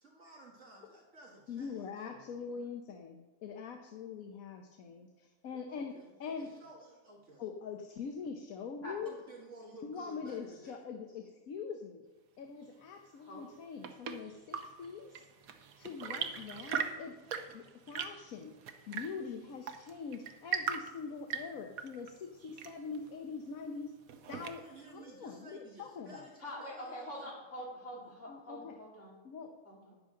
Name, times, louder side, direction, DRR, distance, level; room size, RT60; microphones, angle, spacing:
voice 1, 0.0-1.9 5.7-7.5 9.0-10.8 24.5-27.1, right 2 dB, 60° right, -2 dB, 1.9 m, -54 dB
voice 2, 1.5-6.5 7.4-9.2 9.8-12.1 12.4-15.2 15.8-17.2 17.5-18.6 18.9-23.9 24.3-24.6 24.9-26.3 28.3-28.8 29.2-29.6, left 5 dB, 85° left, 4 dB, 1.3 m, -43 dB
voice 3, 2.1-2.5 8.8-9.0 13.2-13.4 26.4-29.2 29.6-30.0, equal, 60° left, -4 dB, 3.2 m, -45 dB
Chirp tweet / Engine / Tap, 13.4-24.9, right 7 dB, 85° right, 1.3 m, -41 dB
11.5 x 9.7 x 3.8 m, 1.1 s
omnidirectional pair, 1.4 m